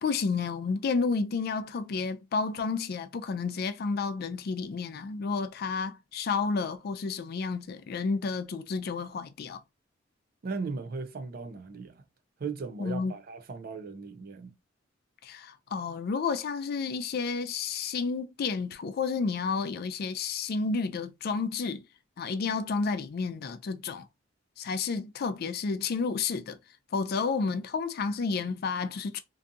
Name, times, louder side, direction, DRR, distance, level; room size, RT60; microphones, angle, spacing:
voice 1, 0.0-9.6 12.8-13.1 15.2-21.8 22.2-24.0 24.6-26.6 26.9-29.2, left 4 dB, 55° left, 0.4 m, -31 dB
voice 2, 10.4-12.0 12.4-14.5, right 4 dB, 50° right, 0.4 m, -37 dB
2.6 x 2.3 x 2.6 m
head